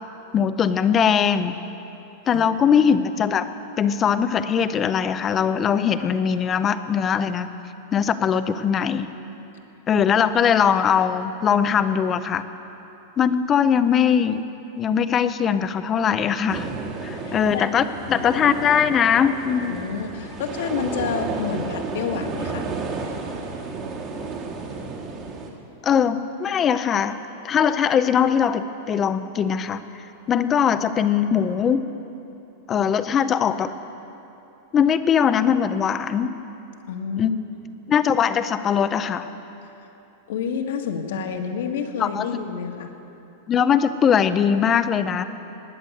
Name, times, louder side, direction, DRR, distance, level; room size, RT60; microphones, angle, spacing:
voice 1, 0.3-1.6 2.3-3.5 3.8-7.5 7.9-9.1 9.9-12.4 13.2-14.4 14.8-16.7 17.0-19.8 25.8-27.2 27.4-29.8 30.3-31.8 32.7-33.7 34.7-36.4 37.2-37.3 37.9-39.3 41.1-41.2 42.0-42.3 43.5-45.2, left 7 dB, 20° left, 12 dB, 0.5 m, -21 dB
sound 1, 16.5-25.5, right 4 dB, 25° right, 1.6 m, -32 dB
voice 2, 17.2-17.7 18.3-18.4 19.7-22.7 36.9-37.4 39.8-39.9 40.3-42.9, left 6 dB, 70° left, 3 dB, 1.6 m, -29 dB
19.5 x 8.0 x 9.1 m, 2.9 s
supercardioid pair, 170°, 0 cm